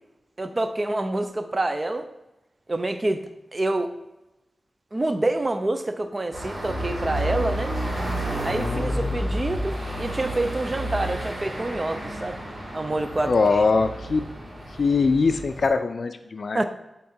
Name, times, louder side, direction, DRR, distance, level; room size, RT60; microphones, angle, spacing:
voice 1, 0.4-2.1 2.7-3.9 4.9-7.8 8.4-12.4 12.7-13.6 16.5-16.6, right 2 dB, 30° right, 8 dB, 0.5 m, -27 dB
sound 1, 6.3-15.7, equal, 55° right, 2.4 m, -31 dB
voice 2, 8.5-9.1 13.3-14.2 14.8-16.6, left 4 dB, 60° left, 9 dB, 0.4 m, -22 dB
8.2 x 3.7 x 4.4 m, 0.94 s
wide cardioid pair, 125°, 0 cm